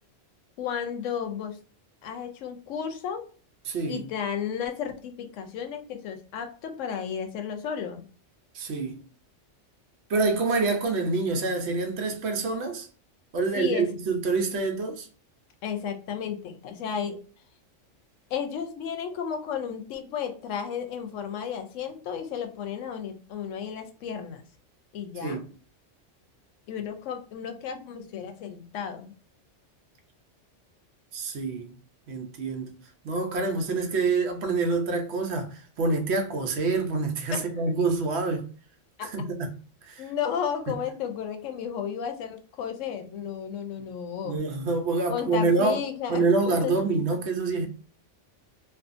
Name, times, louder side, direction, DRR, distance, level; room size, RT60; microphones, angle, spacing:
voice 1, 0.6-1.6 2.0-3.2 3.9-8.0 13.6-13.9 15.6-17.2 18.3-24.4 24.9-25.4 26.7-29.1 37.3-37.7 39.0-39.1 40.0-44.4 45.1-46.3 46.6-46.7, left 8 dB, 90° left, 0.9 m, -33 dB
voice 2, 3.7-4.0 8.5-9.0 10.1-12.9 13.3-15.1 25.2-25.4 31.1-31.7 32.1-32.8 33.0-38.4 39.0-39.5 39.9-40.0 44.2-45.8 46.1-47.7, right 3 dB, 70° right, 0.9 m, -26 dB
2.6 x 2.3 x 2.4 m
omnidirectional pair, 1.3 m